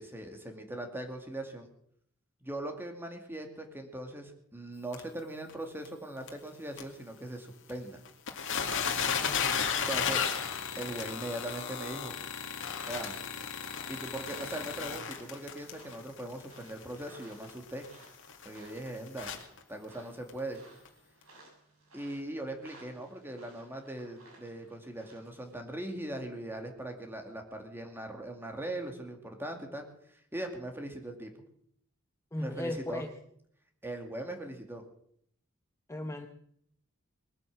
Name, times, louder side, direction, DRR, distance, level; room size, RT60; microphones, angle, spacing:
voice 1, 0.0-1.7 2.4-8.0 9.9-10.2 10.8-12.2 12.8-13.2 13.9-17.9 18.4-19.3 19.7-20.6 21.9-29.9 30.1-31.3 32.4-33.0 33.8-34.8, right 1 dB, 10° right, 4 dB, 2.4 m, -40 dB
sound 1, 4.9-5.0 5.5-5.6 5.8-5.9 6.3-6.4 6.8-6.9 7.7-7.8 8.1-19.6 20.3-20.4 20.9-21.0, left 6 dB, 65° left, 2.1 m, -34 dB
voice 2, 9.2-9.6 32.3-33.1 35.9-36.3, left 1 dB, 15° left, 5 dB, 0.9 m, -37 dB
sound 2, 11.0-25.5, right 2 dB, 80° right, 7.4 m, -59 dB
20.5 x 9.1 x 7.5 m, 0.68 s
head